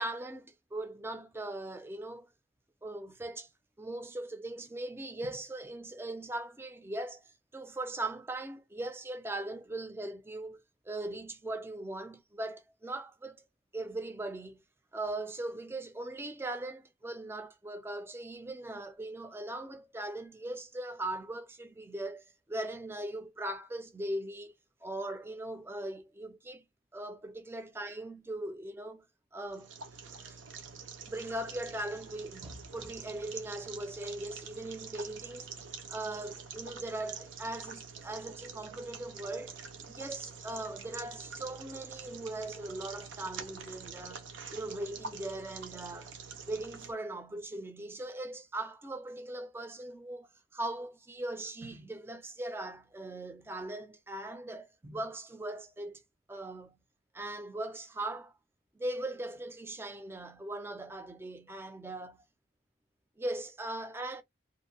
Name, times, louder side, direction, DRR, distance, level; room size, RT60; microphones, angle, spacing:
voice 1, 0.0-2.3 2.8-3.5 3.8-13.5 13.7-14.6 14.9-24.5 24.8-26.6 26.9-29.1 29.3-29.7 30.1-30.4 31.1-35.5 35.9-39.6 39.9-46.1 46.5-56.0 56.3-56.8 57.1-58.3 58.7-62.2 63.2-64.2, right 1 dB, 10° right, 0.3 m, -40 dB
sound 1, 29.5-46.9, right 5 dB, 85° right, 0.6 m, -46 dB
2.5 x 2.4 x 2.7 m
head